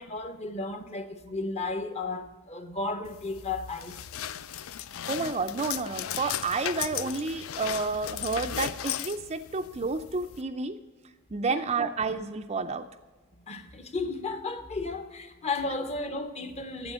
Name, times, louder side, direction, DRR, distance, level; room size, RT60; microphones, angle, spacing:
voice 1, 0.0-4.0 11.5-11.6 13.5-16.9, left 3 dB, 30° left, 0.8 m, -34 dB
sound 1, 3.1-10.4, left 10 dB, 65° left, 0.4 m, -36 dB
voice 2, 5.1-10.8 11.3-12.9, right 4 dB, 30° right, 0.4 m, -30 dB
8.9 x 7.9 x 8.2 m
head